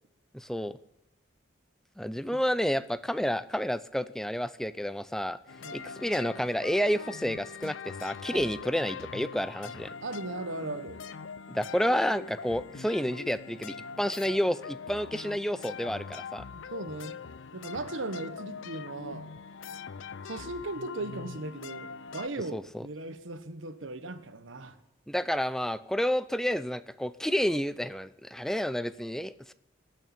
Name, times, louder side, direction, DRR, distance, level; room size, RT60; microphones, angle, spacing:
voice 1, 0.3-0.8 2.0-5.4 5.7-9.9 11.5-16.4 22.5-22.8 25.1-29.5, equal, ahead, 14 dB, 0.4 m, -30 dB
sound 1, 5.5-22.3, left 5 dB, 85° left, 0.6 m, -42 dB
voice 2, 10.0-11.0 16.5-17.2 17.5-19.3 20.2-24.8, right 2 dB, 85° right, 10 dB, 1.3 m, -38 dB
19.0 x 6.5 x 8.7 m, 0.88 s
head